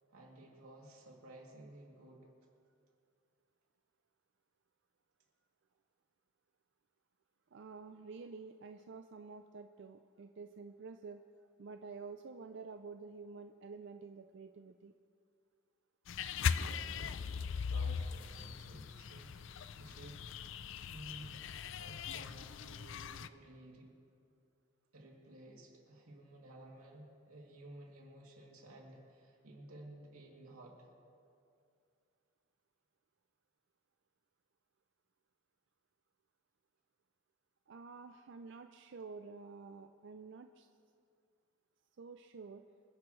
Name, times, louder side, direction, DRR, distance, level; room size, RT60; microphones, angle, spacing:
voice 1, 0.1-2.3 16.6-20.3 20.9-23.9 24.9-30.9, right 1 dB, 90° right, -2 dB, 2.8 m, -55 dB
voice 2, 7.5-11.2 11.6-14.9 37.7-40.7 42.0-42.6, right 4 dB, 55° right, 7 dB, 0.4 m, -50 dB
sound 1, 16.1-23.3, left 6 dB, 60° left, 0.4 m, -39 dB
26.0 x 10.5 x 3.2 m, 2.4 s
head